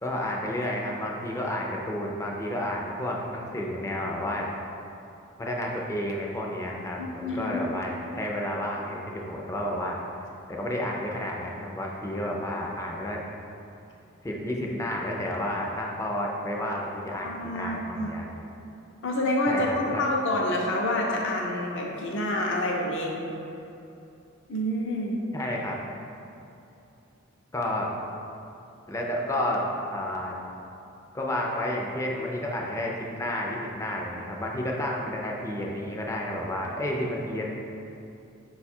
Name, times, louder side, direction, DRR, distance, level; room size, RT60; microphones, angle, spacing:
voice 1, 0.0-4.5 5.4-10.0 10.5-13.2 14.2-18.3 19.5-20.0 25.3-25.8 27.5-27.9 28.9-29.6 29.9-30.4 31.1-37.5, left 1 dB, 15° left, -1 dB, 0.4 m, -31 dB
voice 2, 7.0-7.6 17.2-18.1 19.0-19.7 20.0-23.2 24.5-25.2, left 1 dB, 60° left, -1 dB, 0.6 m, -28 dB
5.0 x 2.3 x 4.2 m, 2.8 s
head